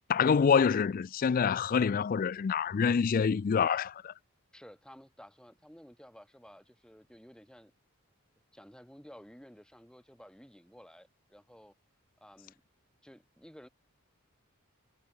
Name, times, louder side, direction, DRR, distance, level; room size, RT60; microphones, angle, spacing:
voice 1, 0.1-4.1, left 6 dB, 40° left, 0.3 m, -26 dB
voice 2, 4.5-7.7 8.5-11.7 12.2-12.6 13.0-13.7, equal, 5° left, 3.8 m, -54 dB
head